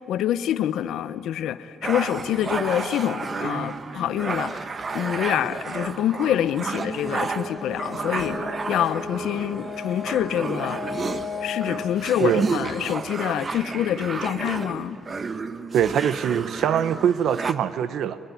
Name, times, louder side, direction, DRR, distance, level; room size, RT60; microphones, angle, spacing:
voice 1, 0.1-10.8 11.4-15.0, left 11 dB, 80° left, 0.8 m, -26 dB
sound 1, 1.8-17.5, right 4 dB, 40° right, 1.0 m, -32 dB
Brass instrument, 7.4-11.9, left 4 dB, 10° left, 3.8 m, -35 dB
voice 2, 12.2-12.5 15.7-18.2, right 9 dB, 75° right, 0.8 m, -23 dB
23.0 x 21.5 x 9.4 m
cardioid pair, 90°, 0 cm